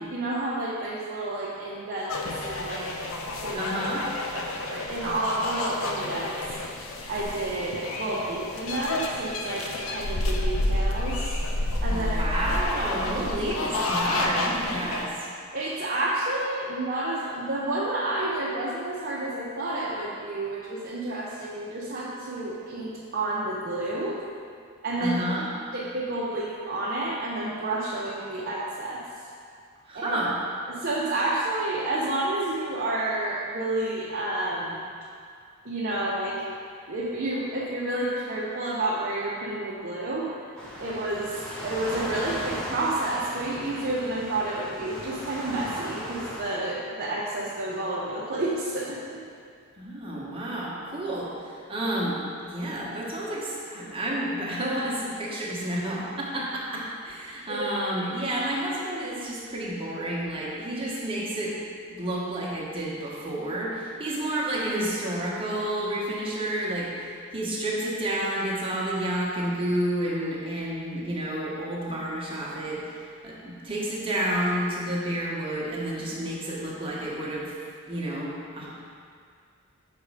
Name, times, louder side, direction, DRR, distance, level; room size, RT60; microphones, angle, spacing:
voice 1, 0.1-2.9 3.4-3.7 4.3-6.3 7.1-11.3 11.8-12.7 13.1-13.3 15.5-24.2 24.8-25.2 25.7-29.0 29.9-30.2 30.7-34.8 35.6-36.4 36.9-40.3 40.8-49.2 57.5-57.7, right 2 dB, 45° right, -6 dB, 0.7 m, -30 dB
sound 1, 2.1-15.0, left 2 dB, 65° left, 0.6 m, -30 dB
voice 2, 3.5-4.1 11.9-15.3 25.0-25.4 29.9-30.3 49.8-52.2 52.4-61.6 61.9-66.9 67.3-72.9 73.2-77.5 77.9-78.7, right 1 dB, 25° right, -6 dB, 1.2 m, -30 dB
Waves surf, 40.6-46.4, equal, 5° left, 0.8 m, -37 dB
6.3 x 4.1 x 4.8 m, 2.2 s
head